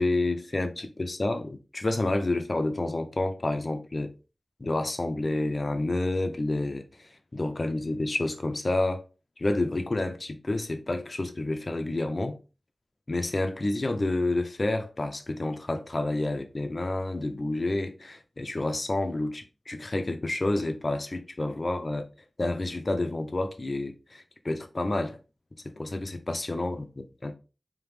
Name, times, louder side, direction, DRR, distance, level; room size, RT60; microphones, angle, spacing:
voice 1, 0.0-4.1 4.6-9.0 9.4-12.4 13.1-22.0 22.4-25.2 25.8-26.8 27.2-27.3, left 2 dB, 50° left, 0.7 m, -29 dB
3.5 x 2.9 x 3.4 m
wide cardioid pair, 50°, 0 cm